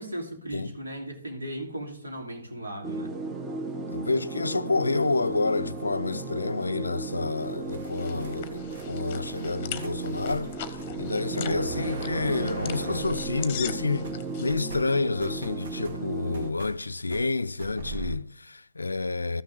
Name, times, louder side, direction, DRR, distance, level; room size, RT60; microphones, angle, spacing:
voice 1, 0.0-3.1, right 1 dB, 75° right, 2.8 m, -37 dB
sound 1, 2.8-16.5, right 3 dB, 15° right, 0.8 m, -35 dB
voice 2, 3.9-10.5 11.0-14.1 14.4-19.4, left 3 dB, 75° left, 0.4 m, -29 dB
sound 2, 7.4-14.5, left 9 dB, 30° left, 0.9 m, -41 dB
sound 3, 7.4-13.8 14.0-18.2, right 3 dB, 50° right, 1.6 m, -41 dB
14.0 x 6.4 x 3.4 m
figure-of-eight pair, 135°, 0 cm